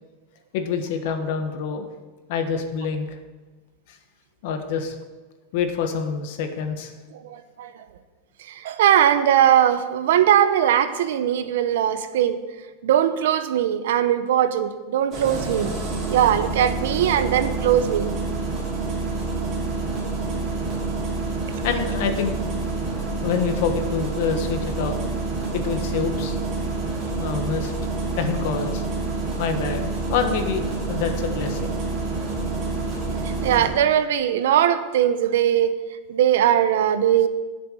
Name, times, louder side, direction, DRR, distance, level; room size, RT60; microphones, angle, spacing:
voice 1, 0.5-1.9 2.3-3.1 3.9-4.0 4.4-4.9 5.5-6.9 21.6-22.4 23.2-25.1 25.5-26.4 27.2-27.7 28.2-28.8 29.4-31.7, left 6 dB, 50° left, 7 dB, 1.2 m, -26 dB
voice 2, 7.1-7.8 8.4-12.4 12.8-15.8 16.0-18.1 26.8-26.9 33.4-35.7 36.1-37.3, right 10 dB, 70° right, 11 dB, 0.8 m, -20 dB
Engine starting, 15.1-33.7, right 3 dB, 20° right, 2.7 m, -27 dB
12.0 x 6.8 x 6.3 m, 1.3 s
supercardioid pair, 180°, 0 cm